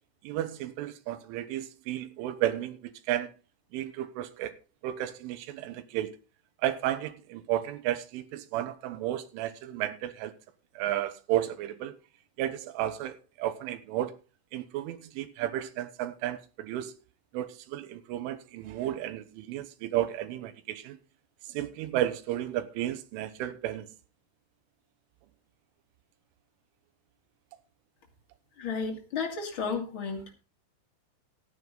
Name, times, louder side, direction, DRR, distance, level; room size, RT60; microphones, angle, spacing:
voice 1, 0.2-3.3 3.7-4.5 4.8-6.2 6.6-10.3 10.8-12.0 12.4-14.2 14.5-16.9 17.3-21.0 21.5-23.9, right 13 dB, 85° right, 3.5 m, -33 dB
voice 2, 28.6-30.2, left 5 dB, 40° left, 1.9 m, -33 dB
14.5 x 9.7 x 3.9 m
omnidirectional pair, 5.6 m